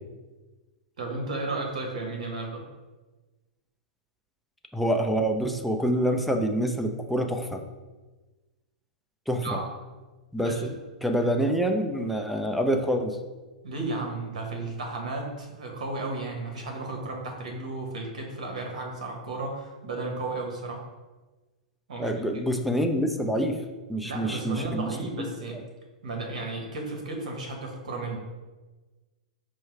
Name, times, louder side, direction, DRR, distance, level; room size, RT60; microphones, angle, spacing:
voice 1, 1.0-2.6 9.3-9.7 10.4-10.7 11.2-11.3 13.6-20.8 21.9-22.4 24.0-25.6 26.0-28.2, right 2 dB, 70° right, 1 dB, 1.1 m, -34 dB
voice 2, 4.7-7.6 9.3-9.6 10.3-10.7 11.0-13.2 22.0-23.6 23.9-25.3, equal, ahead, 2 dB, 0.4 m, -26 dB
4.5 x 2.1 x 4.7 m, 1.2 s
figure-of-eight pair, 105°, 4 cm